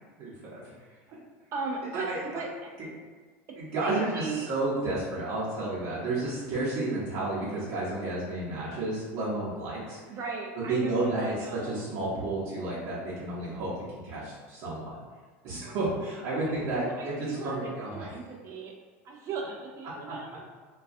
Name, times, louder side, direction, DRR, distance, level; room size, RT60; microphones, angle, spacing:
voice 1, 0.2-0.6 1.9-2.4 2.8-2.9 3.6-10.0 10.7-15.0 15.4-18.1 19.8-20.1, right 2 dB, 60° right, -8 dB, 0.8 m, -31 dB
voice 2, 1.5-2.7 3.8-4.5 10.1-11.9 16.5-18.7 19.0-20.4, right 4 dB, 40° right, 0 dB, 0.3 m, -37 dB
2.3 x 2.3 x 2.5 m, 1.5 s
supercardioid pair, 110°, 7 cm